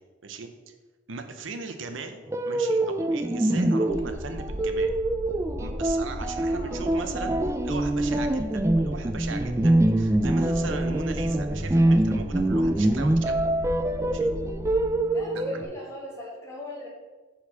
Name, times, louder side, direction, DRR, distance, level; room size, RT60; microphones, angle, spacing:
voice 1, 0.2-0.7 1.1-5.0 5.6-7.4 7.6-13.4 14.0-14.3 15.3-15.5, right 4 dB, 85° right, 7 dB, 0.7 m, -38 dB
sound 1, 2.3-15.6, right 1 dB, 15° right, 0.3 m, -25 dB
sound 2, 3.9-14.9, equal, 75° left, 1.2 m, -37 dB
voice 2, 6.5-6.8 15.1-16.9, left 1 dB, 15° left, -5 dB, 1.8 m, -40 dB
4.6 x 4.5 x 5.5 m, 1.3 s
head